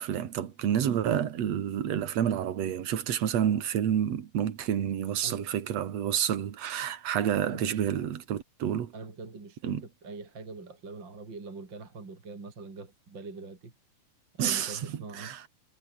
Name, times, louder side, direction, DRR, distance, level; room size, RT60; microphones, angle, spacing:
voice 1, 0.0-8.9 9.6-9.8 14.4-15.4, right 9 dB, 50° right, 2.7 m, -29 dB
voice 2, 5.2-5.5 7.2-7.7 8.9-13.7 14.4-15.3, right 3 dB, 30° right, 4.3 m, -43 dB
omnidirectional pair, 4.1 m